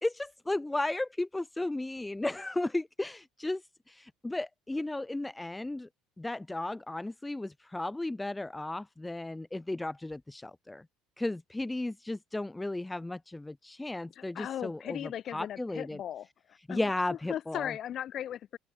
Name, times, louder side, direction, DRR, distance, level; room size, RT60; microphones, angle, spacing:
voice 1, 0.0-5.9 6.2-10.8 11.2-16.0 16.7-17.7, left 2 dB, 10° left, 0.3 m, -35 dB
voice 2, 14.1-16.9 17.3-18.6, left 10 dB, 45° left, 2.6 m, -38 dB
cardioid pair, 135°, 0 cm